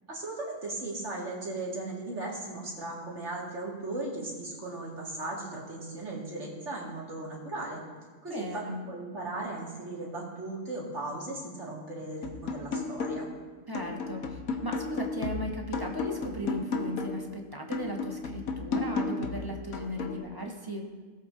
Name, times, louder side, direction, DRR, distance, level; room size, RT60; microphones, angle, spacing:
voice 1, 0.1-7.8 8.2-13.3, right 2 dB, 55° right, -4 dB, 2.6 m, -37 dB
voice 2, 8.2-8.8 13.7-20.9, equal, 20° right, 1 dB, 0.9 m, -37 dB
sound 1, 12.2-13.4 13.7-17.3 17.7-20.2, left 4 dB, 85° left, 1.4 m, -34 dB
17.5 x 8.3 x 2.7 m, 1.4 s
omnidirectional pair, 1.4 m